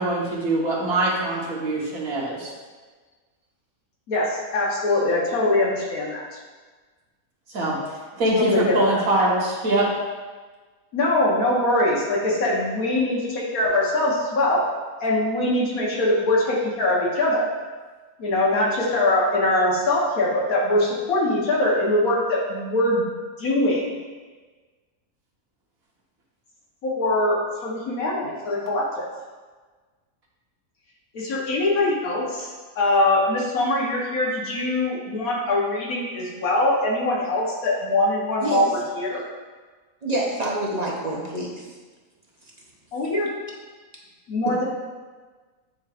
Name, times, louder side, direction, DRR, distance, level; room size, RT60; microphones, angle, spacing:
voice 1, 0.0-2.5 7.5-7.7 8.2-9.9, right 1 dB, 75° right, -4 dB, 1.8 m, -23 dB
voice 2, 4.1-6.3 8.3-9.0 10.9-14.6 15.0-17.5 18.2-23.1 23.4-24.0 26.8-29.1 31.1-32.5 32.8-39.2 42.9-43.3 44.3-44.7, left 1 dB, 75° left, -4 dB, 1.5 m, -22 dB
voice 3, 40.0-41.7 44.4-44.5, right 1 dB, 40° right, -2 dB, 0.7 m, -27 dB
9.2 x 4.7 x 2.4 m, 1.4 s
omnidirectional pair, 1.5 m